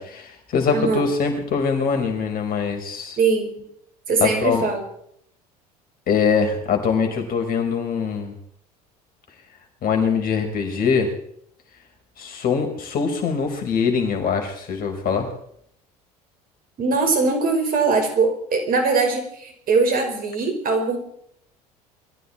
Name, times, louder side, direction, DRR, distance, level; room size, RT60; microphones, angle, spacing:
voice 1, 0.0-3.2 4.2-4.7 6.1-8.4 9.8-11.1 12.2-15.3, left 5 dB, 50° left, 4 dB, 4.9 m, -23 dB
voice 2, 0.7-1.1 3.2-3.5 4.1-4.8 16.8-21.0, right 4 dB, 45° right, 5 dB, 5.3 m, -21 dB
22.0 x 14.5 x 4.4 m, 0.69 s
hypercardioid pair, 70°, 20 cm